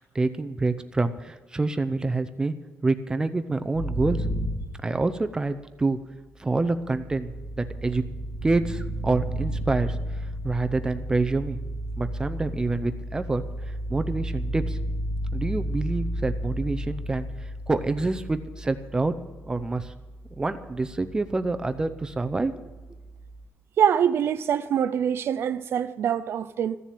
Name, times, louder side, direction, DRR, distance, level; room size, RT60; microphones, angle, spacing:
voice 1, 0.1-2.5 2.8-4.2 4.8-6.0 6.4-8.0 8.4-10.0 10.4-11.6 12.0-13.4 13.9-14.8 15.3-17.3 17.7-19.1 19.5-19.9 20.4-22.7, right 3 dB, 15° right, 0.7 m, -27 dB
sound 1, 3.7-5.5 6.5-23.4, equal, 65° left, 3.0 m, -33 dB
voice 2, 23.8-26.8, right 9 dB, 60° right, 0.4 m, -24 dB
15.0 x 7.3 x 9.2 m
cardioid pair, 155°, 5 cm